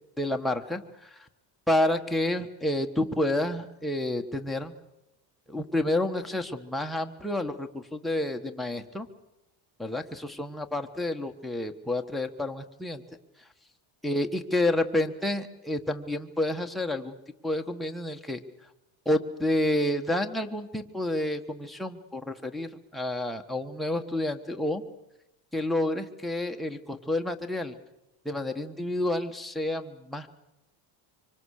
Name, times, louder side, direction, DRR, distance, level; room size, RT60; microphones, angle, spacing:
voice 1, 0.2-1.3 1.7-4.7 5.5-9.1 9.8-13.0 14.0-17.2 17.4-18.4 19.0-24.8 25.5-27.7 28.2-30.3, left 1 dB, ahead, 2 dB, 1.4 m, -29 dB
25.5 x 25.5 x 6.6 m, 0.92 s
cardioid pair, 145°, 46 cm